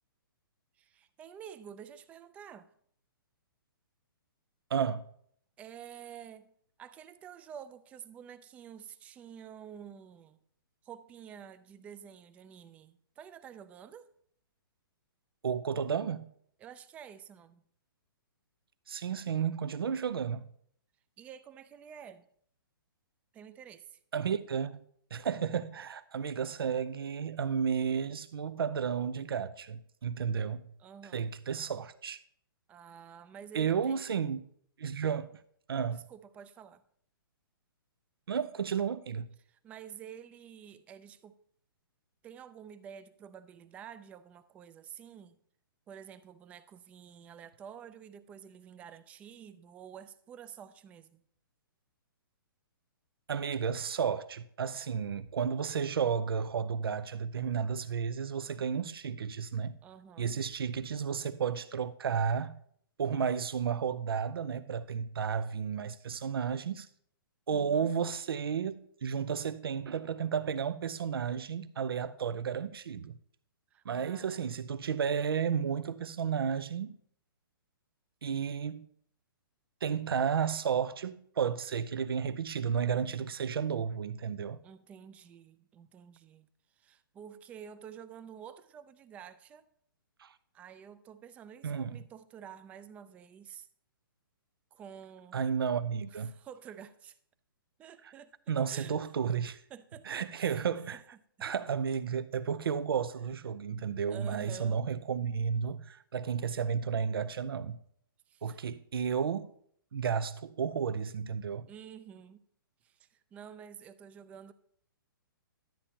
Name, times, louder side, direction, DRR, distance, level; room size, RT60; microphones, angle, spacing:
voice 1, 0.8-2.7 5.6-6.5 6.8-10.4 10.8-14.1 16.6-17.6 21.2-22.3 23.3-24.0 30.8-31.4 32.7-34.0 35.9-36.8 39.4-41.4 42.2-45.4 45.9-51.2 59.8-60.4 67.5-67.9 73.7-74.5 84.6-89.7 90.5-93.7 94.7-95.4 96.1-97.2 97.8-99.0 99.7-100.7 104.1-104.8 108.3-108.6 111.7-112.4 112.8-114.5, right 8 dB, 10° right, 0.3 m, -49 dB
voice 2, 4.7-5.1 15.4-16.3 18.9-20.5 24.1-24.8 25.1-30.6 31.1-32.2 33.5-34.4 34.8-35.4 35.7-36.0 38.3-39.3 53.3-59.8 60.2-62.6 63.0-66.9 67.5-73.1 73.9-77.0 78.2-78.8 79.8-84.6 90.2-90.3 91.6-91.9 95.3-96.3 98.5-99.6 100.1-101.0 101.4-107.8 108.4-109.5 109.9-111.7, right 7 dB, 90° right, 0.5 m, -32 dB
11.5 x 8.6 x 2.8 m
hypercardioid pair, 155°, 12 cm